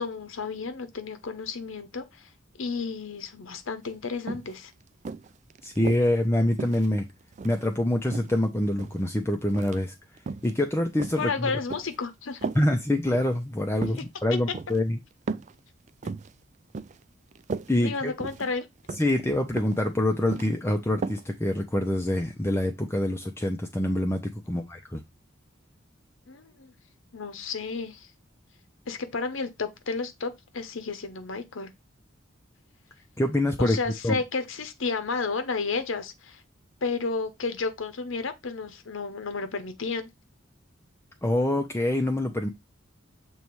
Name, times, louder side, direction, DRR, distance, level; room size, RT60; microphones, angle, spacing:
voice 1, 0.0-2.3 2.6-4.7 11.2-12.5 17.8-18.7 24.5-24.6 26.3-26.7 27.1-28.1 28.9-31.7 33.6-36.4 36.8-40.1, left 4 dB, 85° left, 0.8 m, -32 dB
sound 1, 3.9-4.0 4.3-4.5 5.1-6.1 6.6-7.7 8.1-9.0 9.5-9.8 10.2-10.5 11.0-12.0 12.4-12.7 13.1-13.4 13.8-14.0 14.5-14.8 15.3-15.5 15.9-16.3 16.7-17.0 17.3-17.7 18.2-18.5 18.9-19.1 19.6-19.9 20.1-20.5 21.0-21.2 21.6-21.7, right 4 dB, 35° right, 0.3 m, -35 dB
voice 2, 5.6-7.1 7.4-9.9 10.4-11.5 12.5-15.0 17.7-18.1 19.0-25.0 33.2-33.8 34.0-34.1 41.2-42.5, left 1 dB, 15° left, 0.6 m, -25 dB
6.9 x 3.1 x 4.6 m
head